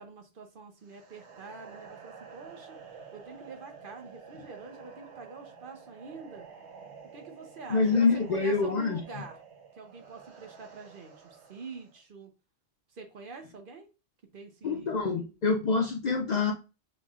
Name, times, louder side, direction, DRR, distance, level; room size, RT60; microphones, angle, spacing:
voice 1, 0.0-2.8 3.1-6.5 7.1-9.4 9.7-12.3 12.9-13.9 14.3-15.0, right 4 dB, 55° right, 5 dB, 0.9 m, -46 dB
horror Ghost sound, 0.8-12.0, right 6 dB, 85° right, 1.1 m, -50 dB
voice 2, 7.7-9.0 14.6-16.5, left 4 dB, 50° left, 2 dB, 0.5 m, -26 dB
5.7 x 3.0 x 2.3 m, 0.29 s
omnidirectional pair, 1.1 m